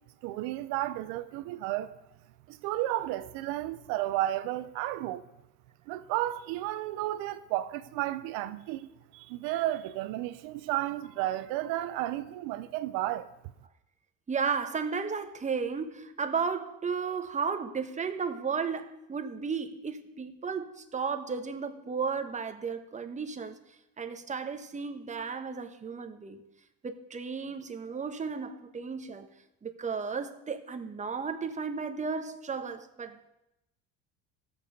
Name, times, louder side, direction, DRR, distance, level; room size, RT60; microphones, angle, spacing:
voice 1, 0.2-1.9 2.5-5.2 5.9-8.9 9.1-13.3, right 14 dB, 80° right, 0.7 m, -32 dB
voice 2, 14.3-23.5 24.0-26.5 26.8-29.3 29.6-33.3, right 5 dB, 20° right, 1.0 m, -34 dB
15.0 x 7.0 x 5.4 m
cardioid pair, 110°, 34 cm